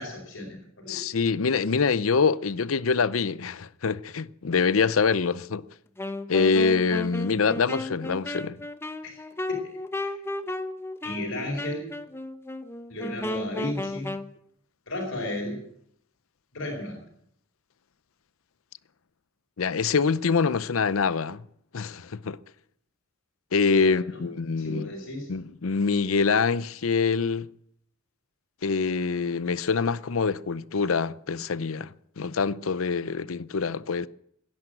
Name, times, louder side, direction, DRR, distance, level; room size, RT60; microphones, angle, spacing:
voice 1, 0.0-1.0 9.0-9.2 9.5-9.7 10.0-10.2 11.0-11.9 12.9-14.1 14.9-15.6 16.5-17.0 23.8-24.2 24.6-25.3, left 1 dB, 70° left, 4.8 m, -34 dB
voice 2, 0.9-5.7 6.3-8.6 19.6-21.4 21.7-22.4 23.5-24.9 25.3-27.5 28.6-34.1, left 5 dB, 90° left, 0.6 m, -25 dB
Wind instrument woodwind instrument, 6.0-14.3, left 1 dB, 10° left, 0.8 m, -34 dB
17.0 x 11.0 x 7.8 m
head